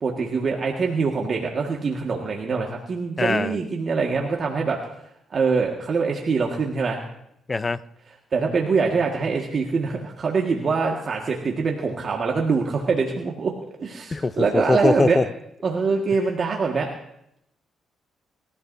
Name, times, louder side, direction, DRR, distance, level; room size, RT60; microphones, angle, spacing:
voice 1, 0.0-4.8 5.3-7.0 8.3-13.5 13.8-15.2 15.6-16.9, right 4 dB, 45° right, 1.8 m, -24 dB
voice 2, 3.2-3.5 7.5-7.8 14.1-15.2, left 3 dB, 25° left, 0.6 m, -22 dB
25.0 x 14.0 x 2.7 m
cardioid pair, 90°, 0 cm